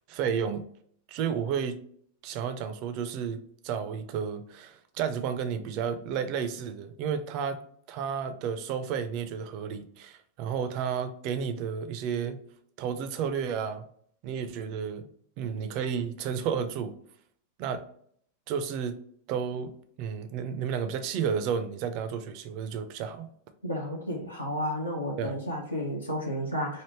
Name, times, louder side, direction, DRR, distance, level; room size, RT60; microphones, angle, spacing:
voice 1, 0.1-0.6 1.1-1.8 2.2-3.4 3.6-7.6 7.9-12.4 12.8-13.9 14.2-15.1 15.4-17.0 17.6-17.8 18.5-18.9 19.3-19.7 20.0-23.3 25.2-25.4, right 7 dB, 45° right, 10 dB, 0.4 m, -32 dB
voice 2, 23.6-26.8, equal, 85° left, -1 dB, 0.6 m, -32 dB
3.3 x 2.5 x 2.9 m, 0.63 s
figure-of-eight pair, 90°, 0 cm